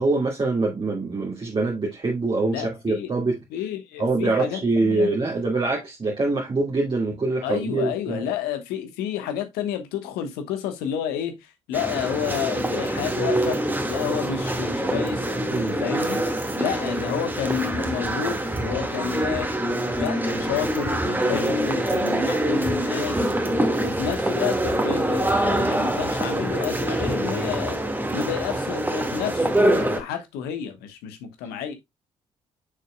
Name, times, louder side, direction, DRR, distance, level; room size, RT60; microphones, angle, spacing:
voice 1, 0.0-3.4 4.0-8.2 15.5-15.8, right 3 dB, 30° right, 2.1 m, -24 dB
voice 2, 2.5-3.2 3.5-5.1 7.4-13.6 13.9-16.2 16.6-19.5 20.0-23.3 23.8-27.8 28.1-31.7, left 9 dB, 70° left, 1.2 m, -30 dB
sound 1, 11.7-30.0, right 1 dB, 10° right, 1.8 m, -25 dB
7.3 x 6.6 x 2.2 m
figure-of-eight pair, 45°, 17 cm